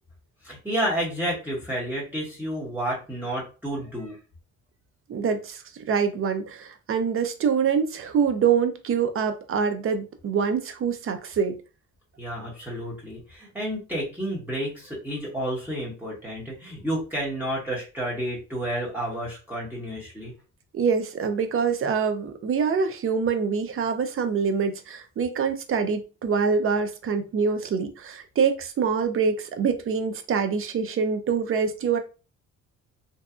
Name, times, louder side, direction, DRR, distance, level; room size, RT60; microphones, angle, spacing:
voice 1, 0.4-4.2 12.2-20.3, right 1 dB, 5° right, 1.1 m, -30 dB
voice 2, 5.1-5.6 5.9-11.6 20.7-32.0, right 6 dB, 45° right, 0.5 m, -25 dB
2.7 x 2.3 x 2.3 m
cardioid pair, 90°, 30 cm